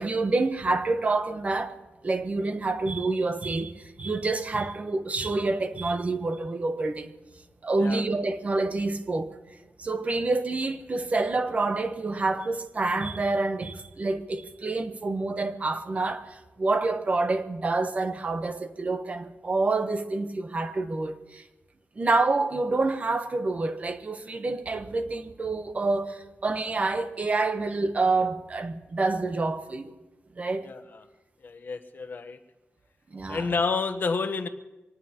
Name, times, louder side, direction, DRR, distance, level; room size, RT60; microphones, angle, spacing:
voice 1, 0.0-1.8 2.0-7.1 7.6-9.4 9.8-21.4 22.0-30.0 30.4-30.7 33.1-33.5, right 3 dB, 35° right, 0.9 m, -27 dB
voice 2, 31.4-32.4 33.3-34.5, left 4 dB, 55° left, 1.0 m, -29 dB
24.5 x 19.0 x 2.9 m
wide cardioid pair, 160°, 4 cm